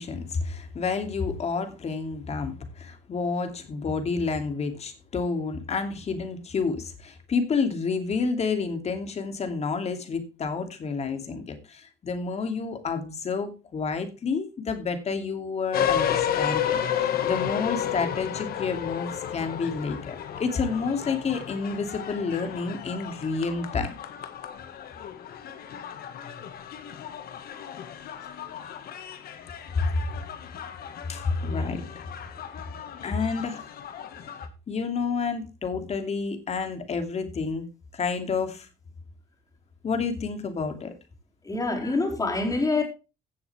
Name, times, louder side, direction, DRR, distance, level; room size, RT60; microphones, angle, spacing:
voice 1, 0.0-23.9 29.7-29.9 31.1-31.9 33.0-33.7 34.7-37.7 37.9-38.7 39.8-40.9 41.8-42.0, left 4 dB, 40° left, 2.7 m, -29 dB
sound 1, 15.7-34.5, left 9 dB, 65° left, 1.8 m, -33 dB
voice 2, 41.4-42.8, left 3 dB, 20° left, 4.5 m, -25 dB
16.5 x 7.1 x 3.5 m
cardioid pair, 110°, 17 cm